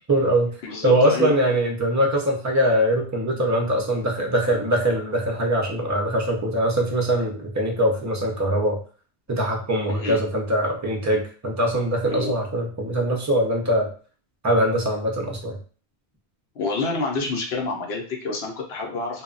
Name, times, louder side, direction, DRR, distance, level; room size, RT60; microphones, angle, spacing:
voice 1, 0.0-0.6 0.8-8.8 9.3-13.9 14.4-15.6, right 1 dB, 25° right, 0 dB, 0.4 m, -22 dB
voice 2, 0.6-1.3 9.9-10.2 12.1-12.3 16.6-19.2, left 3 dB, 80° left, 1 dB, 0.8 m, -28 dB
2.2 x 2.0 x 3.7 m, 0.39 s
omnidirectional pair, 1.1 m